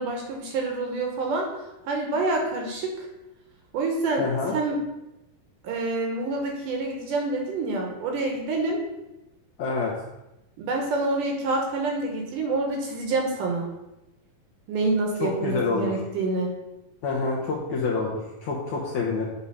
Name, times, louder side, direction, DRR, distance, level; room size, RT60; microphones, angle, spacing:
voice 1, 0.0-1.5 1.9-3.1 3.7-4.8 5.6-8.8 10.6-13.7 14.7-16.5, right 3 dB, 70° right, 1 dB, 2.3 m, -27 dB
voice 2, 4.2-4.5 9.6-9.9 15.2-15.9 17.0-19.3, left 4 dB, 70° left, -4 dB, 1.9 m, -27 dB
8.5 x 3.5 x 5.5 m, 0.94 s
omnidirectional pair, 4.3 m